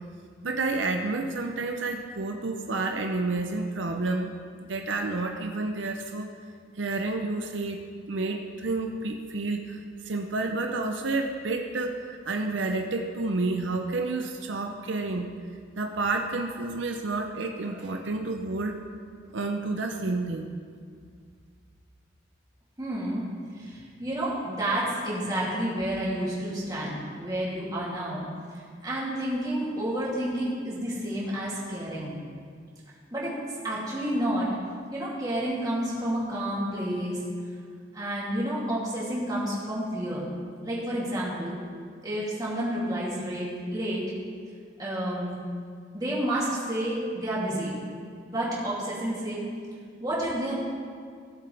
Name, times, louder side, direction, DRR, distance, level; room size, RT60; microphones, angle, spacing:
voice 1, 0.4-4.3 4.6-6.3 6.8-7.8 8.1-15.3 15.8-18.8 19.3-20.5, right 3 dB, 80° right, 4 dB, 0.7 m, -30 dB
voice 2, 22.8-23.2 23.5-28.3 28.5-32.2 33.1-33.3 33.6-34.5 34.9-37.2 37.9-40.3 40.6-41.5 42.0-44.0 44.8-45.3 45.9-47.7 48.2-49.4 50.0-50.5, right 1 dB, 20° right, -7 dB, 2.8 m, -30 dB
17.0 x 7.6 x 3.4 m, 2.1 s
head